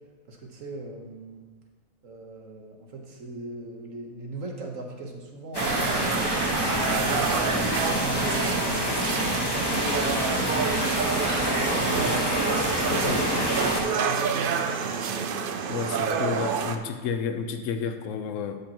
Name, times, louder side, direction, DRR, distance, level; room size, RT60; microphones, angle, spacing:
voice 1, 0.3-1.5 2.0-6.3 6.9-10.7 11.5-12.5 13.8-15.3, right 3 dB, 60° right, 1 dB, 1.5 m, -39 dB
sound 1, 5.5-13.8, equal, 20° left, 1.0 m, -27 dB
sound 2, 5.6-16.8, right 6 dB, 80° right, 0.4 m, -28 dB
voice 2, 12.9-13.3 15.7-18.6, left 6 dB, 65° left, 7 dB, 1.0 m, -31 dB
12.0 x 6.9 x 3.0 m, 1.4 s
omnidirectional pair, 1.6 m